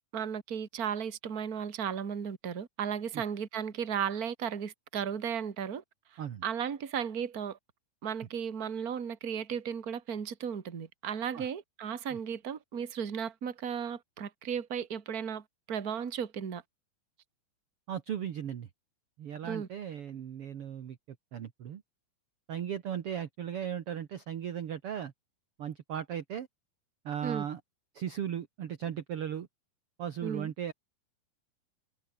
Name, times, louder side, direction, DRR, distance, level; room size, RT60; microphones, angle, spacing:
voice 1, 0.0-5.8 6.1-7.6 8.0-16.6 19.4-19.7 27.2-27.5 30.2-30.5, right 7 dB, 30° right, 1.8 m, -35 dB
voice 2, 17.9-18.7 19.2-21.0 21.3-21.8 22.5-25.1 25.6-26.5 27.0-27.6 27.9-29.5 30.0-30.7, right 9 dB, 55° right, 1.7 m, -37 dB
omnidirectional pair, 4.3 m